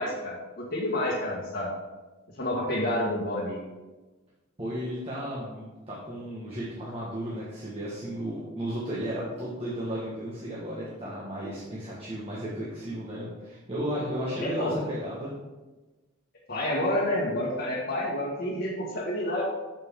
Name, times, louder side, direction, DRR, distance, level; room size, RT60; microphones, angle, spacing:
voice 1, 0.0-1.7 2.4-3.6 14.3-14.8 16.5-19.4, left 1 dB, 55° left, -7 dB, 1.6 m, -29 dB
voice 2, 4.6-15.3, equal, 30° right, -8 dB, 1.4 m, -34 dB
7.8 x 7.0 x 3.7 m, 1.2 s
head